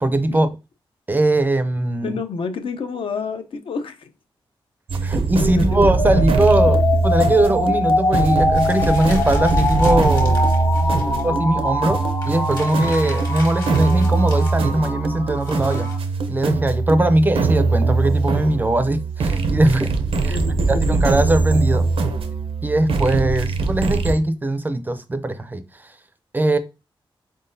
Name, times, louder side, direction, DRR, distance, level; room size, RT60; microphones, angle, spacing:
voice 1, 0.0-0.5 1.1-2.2 5.0-10.4 11.2-15.9 16.3-19.9 20.2-20.4 20.7-21.9 22.6-25.9 26.3-26.6, right 1 dB, 20° right, 0.4 m, -20 dB
voice 2, 2.0-4.1 4.9-5.1 5.3-6.2 10.2-11.3 20.2-21.0, left 4 dB, 70° left, 0.6 m, -30 dB
sound 1, 4.9-24.2, right 3 dB, 90° right, 0.6 m, -21 dB
sound 2, 6.0-16.0, left 2 dB, 35° left, 1.0 m, -23 dB
sound 3, 8.5-11.3 11.7-11.8 12.0-15.9, left 2 dB, 50° left, 1.6 m, -39 dB
4.4 x 3.8 x 2.6 m
wide cardioid pair, 170°, 9 cm